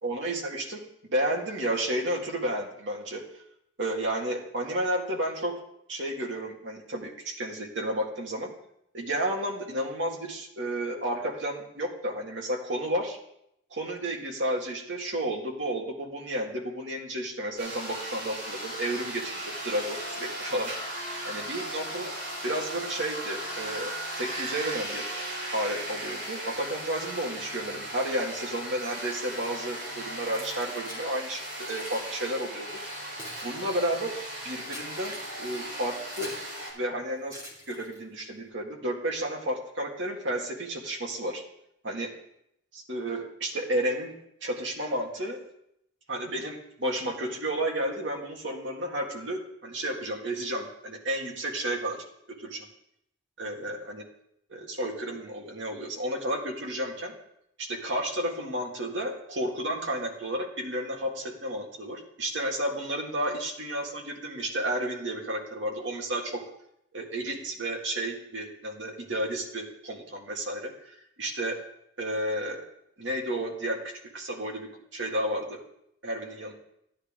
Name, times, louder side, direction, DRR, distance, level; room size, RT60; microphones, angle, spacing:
voice 1, 0.0-3.2 3.8-5.6 5.9-8.5 8.9-13.2 13.7-20.7 21.2-22.1 22.4-23.9 24.2-25.1 25.5-32.7 33.4-34.2 34.4-36.3 36.7-37.4 37.7-41.4 41.8-42.1 42.7-44.1 44.4-45.4 46.1-52.0 52.4-52.6 53.4-54.0 54.5-57.1 57.6-66.4 66.9-71.6 72.0-72.7 73.0-73.8 74.1-75.6 76.0-76.5, right 1 dB, 70° right, 0 dB, 1.9 m, -32 dB
sound 1, 17.6-36.7, right 1 dB, 50° right, 5.5 m, -37 dB
Keys jangling, 30.2-31.1 31.6-32.1 32.8-36.5 37.3-38.2, equal, 15° right, 2.5 m, -45 dB
13.5 x 9.8 x 3.7 m, 0.76 s
head